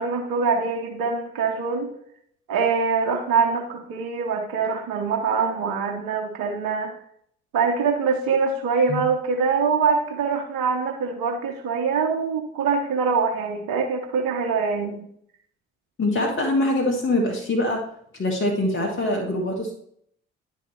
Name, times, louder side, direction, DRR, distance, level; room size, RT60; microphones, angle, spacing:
voice 1, 0.0-1.9 2.5-6.9 7.5-15.0, right 5 dB, 70° right, 3 dB, 1.1 m, -24 dB
voice 2, 16.0-17.8 18.2-19.7, left 1 dB, 35° left, 0 dB, 1.8 m, -23 dB
10.5 x 3.9 x 4.2 m, 0.67 s
hypercardioid pair, 45°, 36 cm